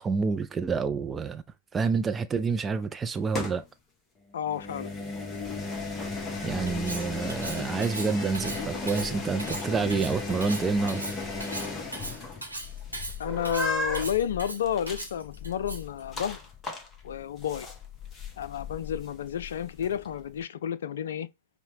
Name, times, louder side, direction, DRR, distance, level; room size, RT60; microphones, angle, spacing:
voice 1, 0.0-1.4 1.7-3.6 6.4-11.0, right 5 dB, 15° right, 0.3 m, -28 dB
sound 1, 3.2-3.7 4.5-20.4, left 3 dB, 20° left, 0.9 m, -36 dB
voice 2, 4.3-4.9 13.2-16.4 17.0-17.7 18.4-21.3, left 9 dB, 60° left, 0.3 m, -31 dB
Cutlery silverware, 6.7-16.0, right 2 dB, 85° right, 1.0 m, -39 dB
5.5 x 2.1 x 2.8 m
figure-of-eight pair, 100°, 0 cm